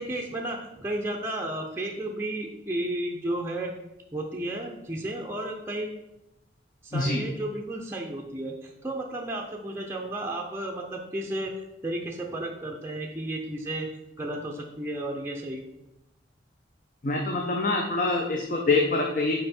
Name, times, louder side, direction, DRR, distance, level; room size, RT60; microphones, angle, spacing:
voice 1, 0.0-3.7 4.1-5.9 6.8-11.5 11.8-13.9 14.2-15.6, right 1 dB, 15° right, 0 dB, 0.5 m, -33 dB
voice 2, 6.9-7.2 17.0-19.3, left 3 dB, 45° left, 1 dB, 0.6 m, -25 dB
5.5 x 4.6 x 4.3 m, 0.91 s
head